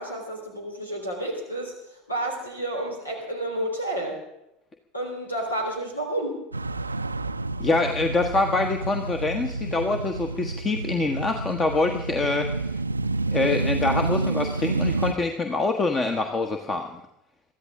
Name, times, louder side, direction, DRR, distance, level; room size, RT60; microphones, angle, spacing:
voice 1, 0.0-4.2 4.9-6.4, right 1 dB, 85° left, 2 dB, 3.7 m, -30 dB
sound 1, 6.5-15.1, right 3 dB, 85° right, 0.4 m, -29 dB
voice 2, 7.6-12.5 13.3-16.9, left 3 dB, 25° left, 5 dB, 1.3 m, -25 dB
23.0 x 14.0 x 3.7 m, 0.85 s
figure-of-eight pair, 70°, 0 cm